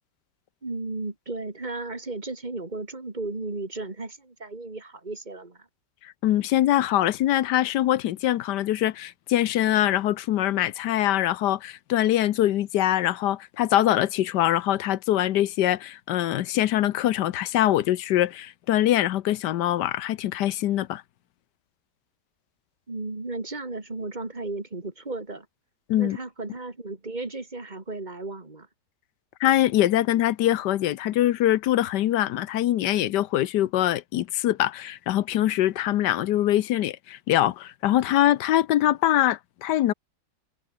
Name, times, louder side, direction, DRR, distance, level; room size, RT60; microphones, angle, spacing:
voice 1, 0.6-5.7 22.9-25.5 26.0-28.7, right 2 dB, 25° right, 2.7 m, -34 dB
voice 2, 6.0-21.0 25.9-26.2 29.4-39.9, left 13 dB, 85° left, 1.4 m, -23 dB
omnidirectional pair, 1.8 m